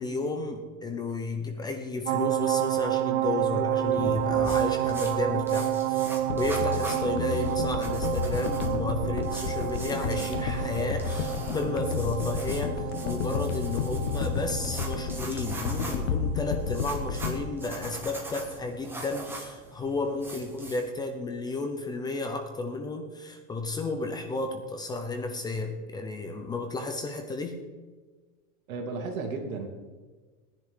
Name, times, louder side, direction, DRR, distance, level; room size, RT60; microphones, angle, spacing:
voice 1, 0.0-6.1 6.4-27.6, left 3 dB, 10° left, 5 dB, 0.6 m, -32 dB
sound 1, 2.1-17.6 17.9-18.1, right 13 dB, 65° right, 0.7 m, -30 dB
sound 2, 3.8-20.9, right 2 dB, 5° right, 1.3 m, -42 dB
sound 3, 6.3-18.6 18.9-19.1, left 6 dB, 60° left, 1.3 m, -32 dB
voice 2, 28.7-29.7, right 4 dB, 80° right, 2 dB, 2.9 m, -33 dB
18.5 x 10.5 x 3.7 m, 1.4 s
supercardioid pair, 165°, 40 cm